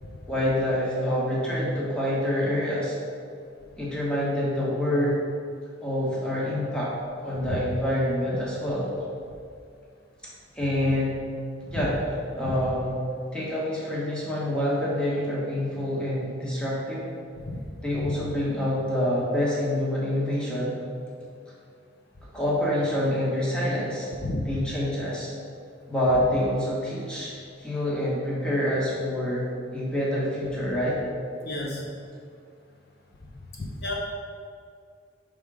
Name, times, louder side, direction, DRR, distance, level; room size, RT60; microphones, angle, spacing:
voice 1, 0.3-2.9 3.8-5.2 5.8-6.9 7.2-8.9 10.5-11.2 11.7-12.0 12.3-13.0 13.3-17.1 17.8-20.7 22.3-24.1 24.4-25.3 25.9-31.0, left 1 dB, 5° left, -7 dB, 1.3 m, -26 dB
voice 2, 31.4-31.9 33.5-33.9, left 2 dB, 55° left, -2 dB, 0.7 m, -32 dB
5.4 x 3.7 x 4.8 m, 2.3 s
head